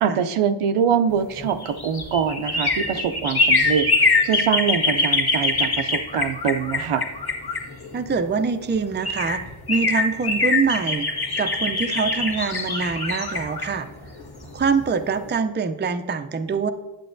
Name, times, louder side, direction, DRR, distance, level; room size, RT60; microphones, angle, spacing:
voice 1, 0.0-7.0, right 7 dB, 80° right, 8 dB, 0.6 m, -24 dB
sound 1, 1.4-8.2 8.7-8.8 9.0-14.8 15.2-15.3, left 3 dB, 50° left, 1.3 m, -23 dB
voice 2, 7.9-9.4 9.7-11.1 11.4-13.9 14.5-16.7, right 5 dB, 25° right, 8 dB, 0.4 m, -24 dB
8.8 x 7.5 x 2.6 m, 1.2 s
cardioid pair, 50°, 50 cm